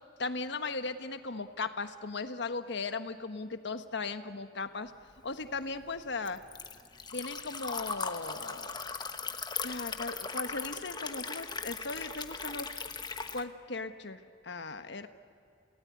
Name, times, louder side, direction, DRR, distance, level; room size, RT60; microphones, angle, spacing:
voice 1, 0.2-4.9 5.2-6.4 7.1-8.7 9.6-12.7 13.3-15.1, left 3 dB, 65° left, 9 dB, 1.3 m, -37 dB
Liquid, 5.2-13.4, left 5 dB, 25° left, 1.2 m, -39 dB
30.0 x 18.5 x 9.7 m, 2.5 s
head